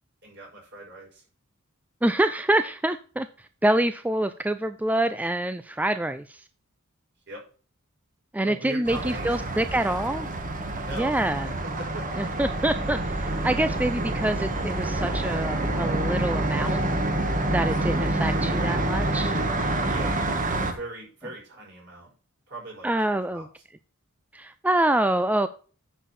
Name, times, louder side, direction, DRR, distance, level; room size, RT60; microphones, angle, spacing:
voice 1, 0.2-1.2 7.3-7.4 8.4-10.0 10.7-12.1 19.8-22.1 22.5-23.5, right 1 dB, 55° right, 5.4 m, -41 dB
voice 2, 2.0-6.5 8.3-10.3 11.0-11.5 12.2-16.8 17.5-19.3 22.8-23.5 24.3-25.5, right 1 dB, 5° right, 0.3 m, -26 dB
sound 1, 8.8-20.7, right 2 dB, 40° right, 1.5 m, -27 dB
8.9 x 6.6 x 4.2 m
head